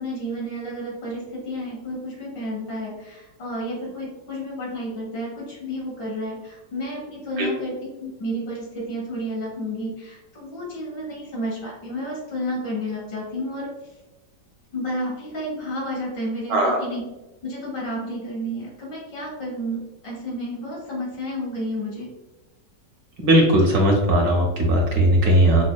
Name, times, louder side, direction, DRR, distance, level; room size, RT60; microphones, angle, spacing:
voice 1, 0.0-7.7 8.0-13.7 14.7-17.0 17.4-22.1, equal, 75° left, -3 dB, 1.9 m, -31 dB
voice 2, 23.2-25.6, right 1 dB, 70° right, 0 dB, 1.0 m, -18 dB
5.1 x 2.2 x 2.2 m, 1.0 s
omnidirectional pair, 1.9 m